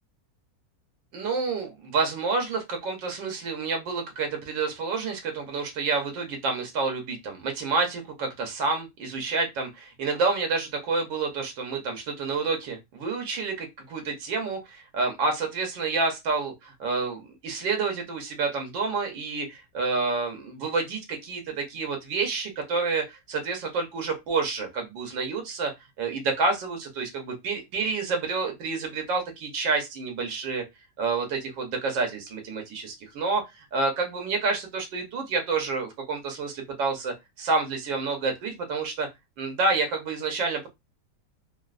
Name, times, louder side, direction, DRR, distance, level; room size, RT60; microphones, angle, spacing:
voice 1, 1.1-25.7 26.0-30.6 31.0-39.1 39.4-40.7, right 4 dB, 85° right, 4 dB, 1.6 m, -29 dB
4.2 x 2.1 x 2.4 m, 0.20 s
omnidirectional pair, 2.0 m